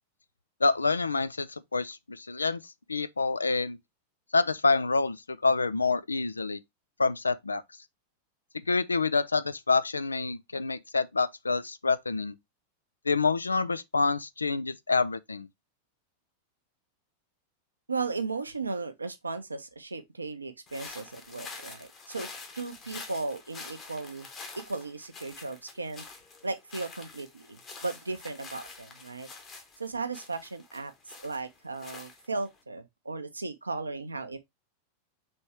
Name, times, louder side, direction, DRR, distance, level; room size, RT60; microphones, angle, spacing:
voice 1, 0.6-2.6 2.9-3.8 4.3-6.6 7.0-7.6 8.7-12.3 13.1-15.5, left 4 dB, 80° left, 0.3 m, -27 dB
voice 2, 17.9-22.3 22.6-24.3 24.5-26.0 26.4-29.3 29.8-34.4, right 3 dB, 80° right, 0.6 m, -36 dB
sound 1, 20.7-32.6, left 4 dB, 30° left, 1.2 m, -47 dB
4.3 x 3.4 x 3.1 m
figure-of-eight pair, 90°, 0 cm